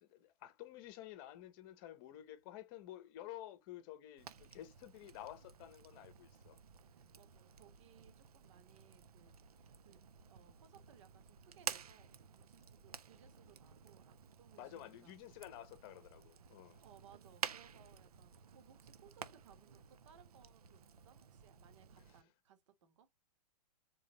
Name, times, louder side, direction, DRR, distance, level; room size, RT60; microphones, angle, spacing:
voice 1, 0.0-6.6 14.6-16.8 22.1-22.2, left 13 dB, 35° left, 0.9 m, -52 dB
Fire, 4.2-22.2, right 8 dB, 70° right, 0.7 m, -51 dB
voice 2, 6.9-10.0 10.3-15.1 16.8-23.1, right 9 dB, 50° right, 1.3 m, -65 dB
4.1 x 3.7 x 3.0 m
figure-of-eight pair, 115°, 20 cm